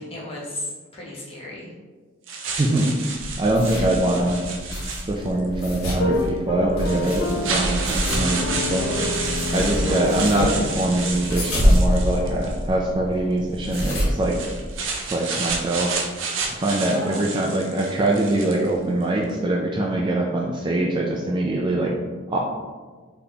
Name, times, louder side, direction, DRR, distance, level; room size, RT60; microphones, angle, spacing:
voice 1, 0.0-1.7 16.9-17.3, left 1 dB, 30° left, -6 dB, 1.0 m, -34 dB
sound 1, 2.3-5.5 6.3-6.4 6.8-12.6 13.6-18.7, right 4 dB, 70° right, 0.6 m, -30 dB
voice 2, 2.6-2.9 3.4-4.4 5.1-8.9 9.5-14.4 15.1-16.0 16.5-21.9 22.3-22.4, right 1 dB, 25° right, -1 dB, 0.3 m, -23 dB
sound 2, 3.2-15.1, equal, 90° left, 1.3 m, -27 dB
sound 3, 5.9-11.8, left 2 dB, 55° left, 0.4 m, -29 dB
4.0 x 3.4 x 2.8 m, 1.4 s
head